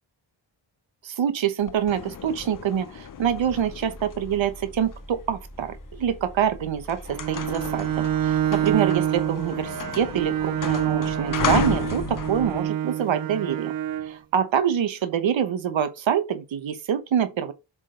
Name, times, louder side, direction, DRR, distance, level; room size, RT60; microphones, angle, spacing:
voice 1, 1.0-13.7 14.1-17.5, right 8 dB, 75° right, 1.1 m, -26 dB
sound 1, 1.6-5.8 6.4-6.6 6.8-12.6, left 8 dB, 45° left, 0.7 m, -33 dB
sound 2, 3.2-8.8, equal, 15° left, 1.8 m, -44 dB
Bowed string instrument, 7.1-14.2, right 11 dB, 50° right, 0.4 m, -27 dB
7.7 x 3.6 x 3.8 m
wide cardioid pair, 95°, 46 cm